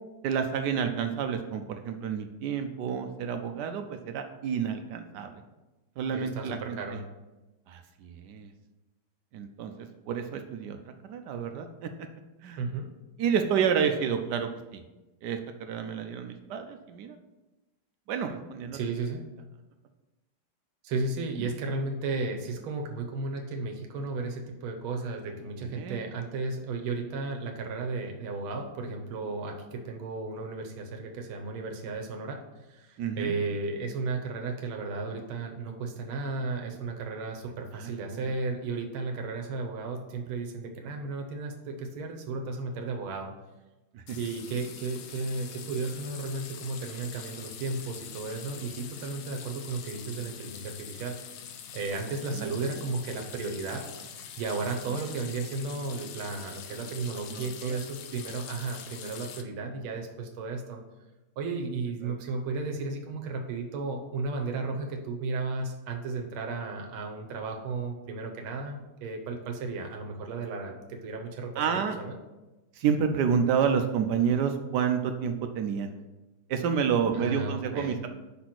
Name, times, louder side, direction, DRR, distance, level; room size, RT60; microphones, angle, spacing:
voice 1, 0.2-5.4 6.0-6.8 7.7-8.5 9.3-10.8 11.1-12.1 12.4-12.6 13.2-14.8 15.2-17.2 18.1-18.8 25.6-26.0 33.0-33.3 37.7-38.3 43.9-44.2 52.3-52.5 57.3-57.8 62.0-62.1 71.6-72.0 72.8-75.9 76.5-78.1, right 7 dB, 75° right, 6 dB, 1.0 m, -29 dB
voice 2, 6.1-7.0 12.6-12.9 18.7-19.2 20.8-43.3 44.2-51.2 51.7-53.8 54.4-60.8 61.4-72.2 77.1-78.0, right 3 dB, 90° right, 2 dB, 1.7 m, -34 dB
sound 1, 44.1-59.4, left 8 dB, 85° left, 1.5 m, -44 dB
5.6 x 4.2 x 5.9 m, 1.1 s
omnidirectional pair, 2.2 m